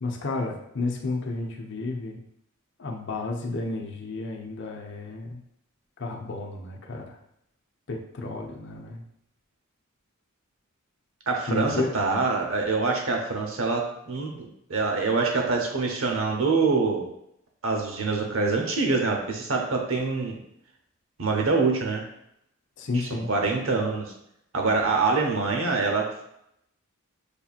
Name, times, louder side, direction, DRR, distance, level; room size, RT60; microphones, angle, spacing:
voice 1, 0.0-2.2 2.8-5.4 6.0-7.2 7.9-9.0 11.5-11.9 22.8-23.3, left 3 dB, 55° left, 2 dB, 0.7 m, -31 dB
voice 2, 11.3-17.0 17.6-20.4 21.2-22.0 23.3-24.1 24.5-26.0, right 4 dB, 70° right, 1 dB, 0.9 m, -25 dB
6.7 x 2.8 x 2.4 m, 0.77 s
head